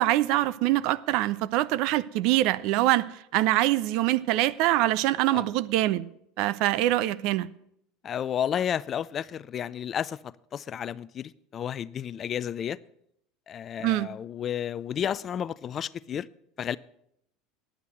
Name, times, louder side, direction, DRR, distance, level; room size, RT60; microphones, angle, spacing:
voice 1, 0.0-3.0 3.3-6.1 6.4-7.5 13.8-14.1, right 15 dB, 60° right, 0.5 m, -24 dB
voice 2, 8.0-12.8 13.5-16.3 16.6-16.8, left 9 dB, 40° left, 0.4 m, -32 dB
10.0 x 8.1 x 7.7 m
hypercardioid pair, 80°, 0 cm